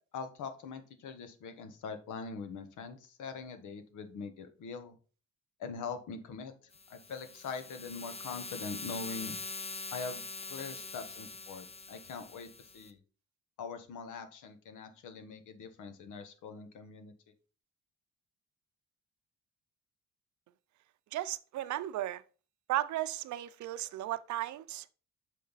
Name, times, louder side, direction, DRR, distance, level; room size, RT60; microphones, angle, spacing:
voice 1, 0.1-5.0 5.6-6.5 6.9-9.4 9.9-13.0 13.6-17.1, left 5 dB, 80° left, 1.2 m, -43 dB
sound 1, 6.7-12.9, left 3 dB, 20° left, 0.7 m, -44 dB
voice 2, 21.1-22.2 22.7-24.9, right 14 dB, 70° right, 0.6 m, -35 dB
6.6 x 5.1 x 4.0 m
cardioid pair, 90°, 30 cm